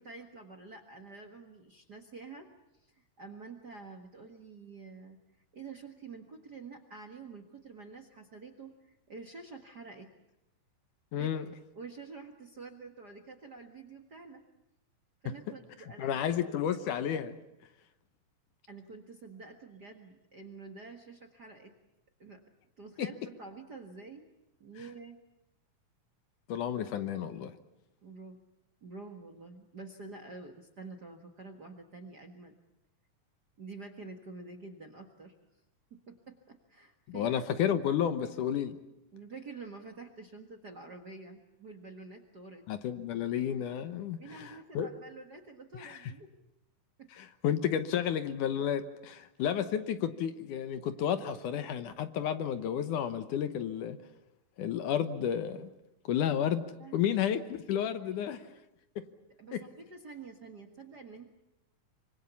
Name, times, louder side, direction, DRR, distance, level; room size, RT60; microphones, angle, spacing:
voice 1, 0.0-2.5 2.7-5.2 5.5-10.1 11.2-11.3 11.7-14.4 15.2-16.1 18.7-21.7 22.2-22.4 22.8-24.3 24.6-25.2 28.0-28.4 28.8-32.5 33.6-35.3 35.9-37.3 39.1-42.7 44.2-46.3 47.0-47.1 56.8-57.1 57.6-58.4 59.4-61.3, right 4 dB, 40° right, 7 dB, 1.6 m, -48 dB
voice 2, 11.1-11.5 16.0-17.4 23.0-23.1 26.5-27.5 37.1-38.8 42.7-44.9 45.7-46.1 47.2-54.0 54.6-55.7 56.1-56.6 56.9-58.5 59.5-59.6, left 9 dB, 70° left, 10 dB, 2.4 m, -31 dB
25.5 x 25.0 x 7.1 m, 0.91 s
omnidirectional pair, 4.0 m